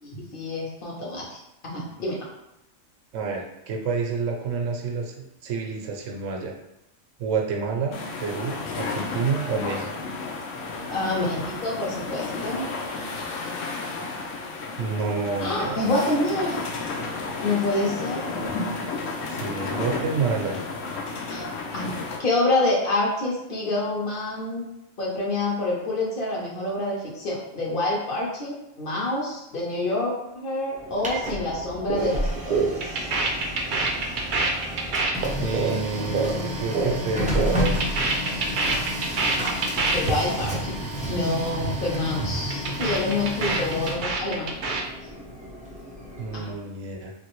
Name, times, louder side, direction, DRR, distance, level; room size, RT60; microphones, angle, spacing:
voice 1, 0.0-2.2 10.9-12.7 15.4-16.7 17.4-18.3 21.3-21.5 21.7-21.9 22.2-24.6 25.0-33.1 39.9-40.7 41.1-44.5 46.3-46.5, left 2 dB, 50° left, -3 dB, 0.9 m, -27 dB
voice 2, 3.1-6.5 7.2-9.9 14.8-15.9 19.3-20.6 35.4-37.8 46.2-47.1, right 5 dB, 85° right, 1 dB, 0.9 m, -29 dB
sound 1, 7.9-22.2, left 3 dB, 85° left, 0.9 m, -32 dB
Printer, 30.7-46.5, equal, 10° right, 0.4 m, -31 dB
sound 2, 31.9-32.1 32.3-36.9 37.2-40.1 40.4-40.6 40.8-41.2 41.4-41.8 42.1-44.8, right 4 dB, 60° right, 0.5 m, -26 dB
3.1 x 2.5 x 3.0 m, 0.90 s
omnidirectional pair, 1.3 m